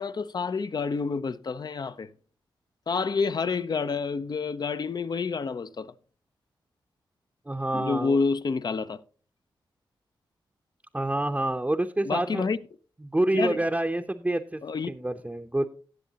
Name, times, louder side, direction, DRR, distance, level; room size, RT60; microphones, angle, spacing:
voice 1, 0.0-2.1 2.9-5.9 7.7-9.0 12.0-12.6 13.3-13.6 14.6-14.9, left 4 dB, 50° left, 0.6 m, -28 dB
voice 2, 7.5-8.2 10.9-12.5 13.1-14.6 14.9-15.7, right 1 dB, 15° right, 0.7 m, -27 dB
17.5 x 7.5 x 2.8 m
cardioid pair, 55°, 9 cm